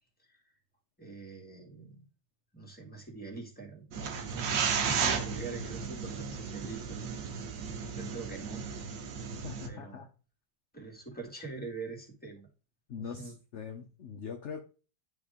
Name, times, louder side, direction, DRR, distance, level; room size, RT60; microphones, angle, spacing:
voice 1, 1.0-2.1 2.5-7.2 7.6-8.6 9.2-9.3 9.7-10.1 10.7-12.5 12.9-13.4, right 3 dB, 5° left, -1 dB, 1.8 m, -44 dB
sound 1, 3.9-9.7, right 6 dB, 80° right, 1.6 m, -34 dB
voice 2, 9.4-10.1 12.9-14.6, left 6 dB, 55° left, 4 dB, 0.8 m, -42 dB
10.5 x 3.6 x 3.6 m, 0.35 s
omnidirectional pair, 1.9 m